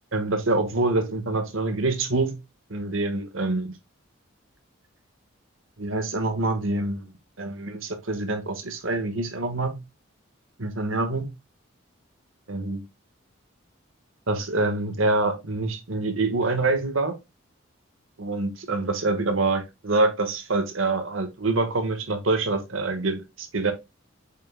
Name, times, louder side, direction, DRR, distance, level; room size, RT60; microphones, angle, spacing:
voice 1, 0.1-2.3 2.7-3.7 5.8-7.1 7.4-9.8 10.6-11.3 12.5-12.8 14.3-17.2 18.2-23.7, right 2 dB, 75° right, 1.5 m, -26 dB
8.3 x 5.8 x 2.2 m
head